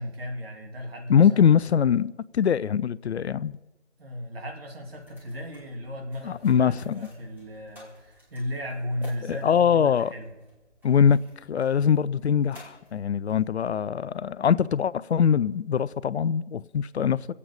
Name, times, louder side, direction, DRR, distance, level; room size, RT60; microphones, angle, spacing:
voice 1, 0.0-1.5 4.0-10.3, left 1 dB, 55° right, 2.9 m, -35 dB
voice 2, 1.1-3.6 6.2-7.1 9.2-10.1 10.8-11.2 11.5-17.3, left 7 dB, 65° left, 0.5 m, -22 dB
sound 1, 4.8-13.8, left 1 dB, 5° right, 2.7 m, -55 dB
24.5 x 8.4 x 5.1 m
figure-of-eight pair, 150°, 35 cm